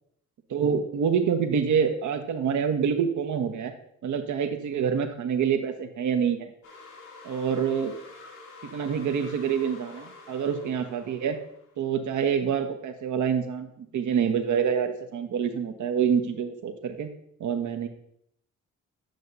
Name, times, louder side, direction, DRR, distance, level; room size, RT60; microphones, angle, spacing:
voice 1, 0.5-3.7 4.0-6.5 7.2-7.9 8.7-11.4 11.8-17.1 17.4-17.9, right 7 dB, 50° right, 7 dB, 0.9 m, -26 dB
sound 1, 6.6-11.9, left 3 dB, 85° left, 1.5 m, -48 dB
7.8 x 6.6 x 2.7 m, 0.71 s
hypercardioid pair, 40°, 38 cm